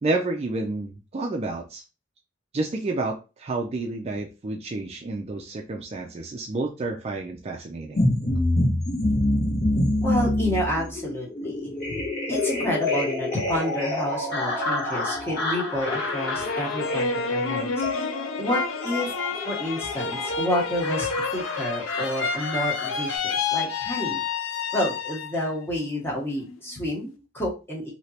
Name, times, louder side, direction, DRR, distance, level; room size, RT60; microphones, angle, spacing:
voice 1, 0.0-1.8 2.5-8.4, right 2 dB, 30° right, 2 dB, 0.4 m, -30 dB
sound 1, 8.0-23.1, left 1 dB, 50° left, 1.3 m, -27 dB
voice 2, 10.0-12.0 12.3-17.8 18.4-19.1 19.4-24.2 24.7-27.9, equal, 10° left, -3 dB, 1.0 m, -29 dB
sound 2, 15.7-25.5 25.9-26.6, left 5 dB, 90° left, 0.5 m, -29 dB
3.2 x 2.8 x 2.8 m, 0.31 s
head